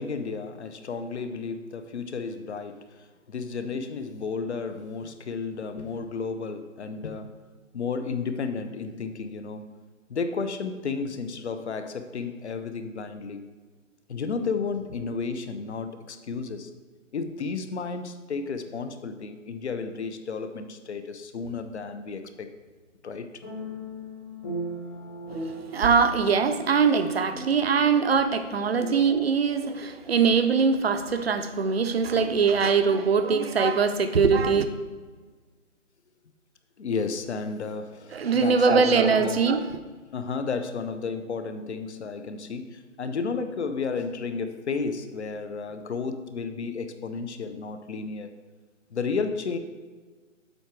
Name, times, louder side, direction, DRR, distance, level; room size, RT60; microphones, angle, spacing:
voice 1, 0.0-7.4 7.7-9.7 10.1-13.5 14.1-16.7 17.1-22.5 23.0-23.3 28.8-29.0 36.8-39.4 40.1-48.3 48.9-49.6, left 4 dB, 60° left, 9 dB, 0.7 m, -32 dB
sound 1, 21.4-21.9 23.4-30.2, right 1 dB, 20° left, 1.0 m, -39 dB
voice 2, 25.7-34.7 38.1-39.7, right 5 dB, 50° right, 9 dB, 0.6 m, -22 dB
7.9 x 4.6 x 4.6 m, 1.4 s
hypercardioid pair, 165°, 39 cm